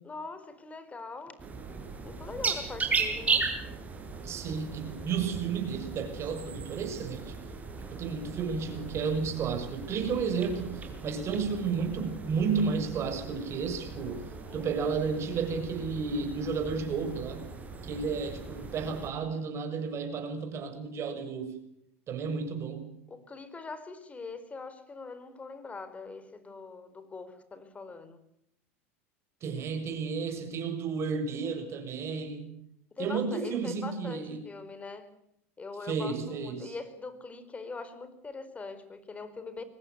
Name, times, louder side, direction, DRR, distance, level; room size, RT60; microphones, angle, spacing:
voice 1, 0.0-1.5 2.0-3.5 14.3-14.7 23.1-28.2 32.9-35.1 35.6-39.6, left 4 dB, 20° left, 12 dB, 4.4 m, -42 dB
sound 1, 1.4-19.1, right 4 dB, 20° right, 7.0 m, -37 dB
voice 2, 4.2-7.4 7.9-14.2 14.5-17.5 17.8-21.6 22.1-22.9 29.4-32.6 33.0-34.5 35.8-36.8, right 5 dB, 40° right, 7 dB, 6.8 m, -32 dB
23.5 x 19.0 x 8.1 m, 0.76 s
hypercardioid pair, 100°, 7 cm